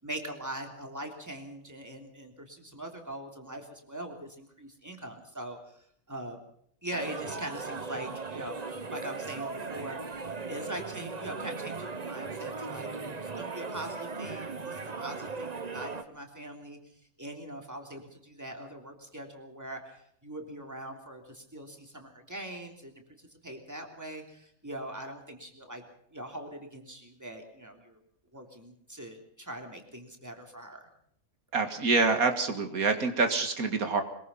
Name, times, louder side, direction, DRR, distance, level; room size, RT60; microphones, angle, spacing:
voice 1, 0.0-5.8 6.1-6.4 6.8-8.6 8.9-16.8 17.2-25.8 26.1-28.0 28.3-30.9, right 1 dB, 10° right, 3 dB, 3.2 m, -42 dB
sound 1, 6.9-16.0, right 4 dB, 30° right, 1.1 m, -38 dB
voice 2, 31.5-34.0, right 4 dB, 85° right, 7 dB, 2.3 m, -26 dB
22.5 x 21.5 x 5.6 m, 0.67 s
omnidirectional pair, 1.5 m